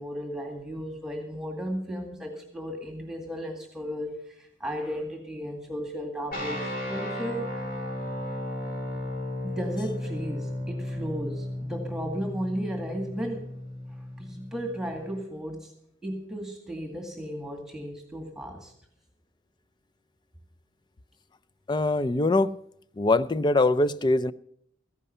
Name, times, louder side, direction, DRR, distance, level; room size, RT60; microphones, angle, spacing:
voice 1, 0.0-7.5 9.4-13.5 14.2-15.7 16.0-18.7, equal, 5° right, 2 dB, 2.0 m, -35 dB
sound 1, 6.3-15.2, left 1 dB, 45° left, 3.8 m, -35 dB
voice 2, 21.7-22.5 23.0-24.3, left 2 dB, 25° left, 13 dB, 0.4 m, -22 dB
14.5 x 11.0 x 5.5 m, 0.70 s
head